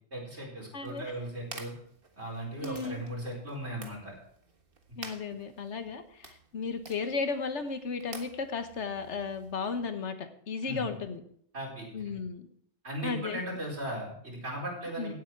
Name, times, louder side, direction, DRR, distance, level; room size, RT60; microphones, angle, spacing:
voice 1, 0.1-1.7 2.2-4.1 10.6-10.9 11.5-11.9 12.8-15.2, right 1 dB, 75° right, -2 dB, 4.7 m, -37 dB
voice 2, 0.7-1.1 2.6-3.0 5.0-11.2 11.9-12.5 13.0-13.4 15.0-15.1, left 5 dB, 85° left, 8 dB, 1.5 m, -35 dB
sound 1, 0.8-9.8, right 3 dB, 55° right, 1.7 m, -51 dB
17.0 x 8.3 x 4.6 m, 0.65 s
omnidirectional pair, 1.2 m